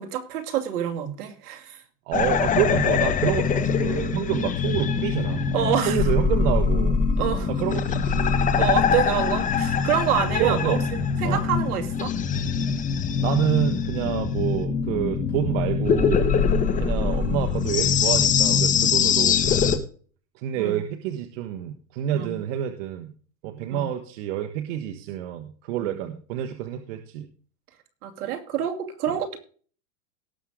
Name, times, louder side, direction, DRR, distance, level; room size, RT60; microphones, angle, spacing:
voice 1, 0.0-1.8 5.5-6.1 7.2-7.5 8.6-12.1 16.6-17.0 20.5-20.8 22.1-22.4 23.7-23.9 25.8-25.9 28.0-29.4, right 9 dB, 65° right, 5 dB, 2.7 m, -27 dB
alien sounds, 2.1-19.8, left 6 dB, 15° left, 1.0 m, -23 dB
voice 2, 2.1-5.5 5.8-7.0 7.6-8.4 10.4-10.8 11.2-11.4 13.2-16.4 16.8-19.8 20.3-23.1 23.4-27.3, right 11 dB, 50° right, 7 dB, 1.4 m, -28 dB
18.0 x 6.4 x 3.7 m, 0.42 s
supercardioid pair, 145°, 48 cm